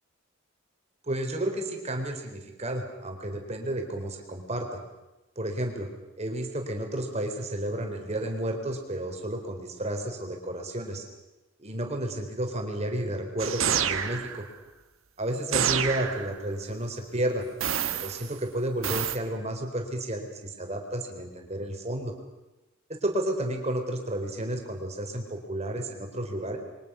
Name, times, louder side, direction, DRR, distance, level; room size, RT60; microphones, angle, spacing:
voice 1, 1.0-4.8 5.4-5.9 6.2-11.1 11.6-14.4 15.2-17.4 18.0-22.1 22.9-26.6, right 1 dB, 30° right, 4 dB, 4.0 m, -32 dB
sound 1, 13.4-14.4 15.5-16.4 17.6-18.3 18.8-19.2, right 8 dB, 70° right, 1.5 m, -28 dB
28.5 x 23.5 x 6.3 m, 1.0 s
head